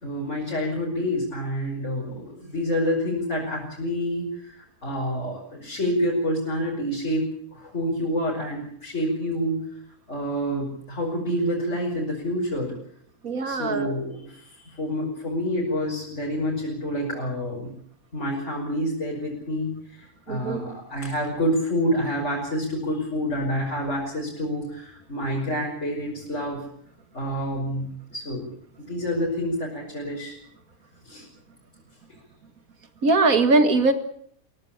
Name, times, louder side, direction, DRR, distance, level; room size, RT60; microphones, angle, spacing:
voice 1, 0.0-7.2 7.5-9.6 10.1-12.7 13.4-17.7 18.1-26.6 27.1-28.5 28.9-30.4 31.0-31.2, equal, 50° left, -3 dB, 6.1 m, -28 dB
voice 2, 13.2-13.9 20.3-20.7 33.0-33.9, right 3 dB, 70° right, 9 dB, 2.4 m, -21 dB
23.5 x 17.5 x 8.8 m, 0.65 s
omnidirectional pair, 1.6 m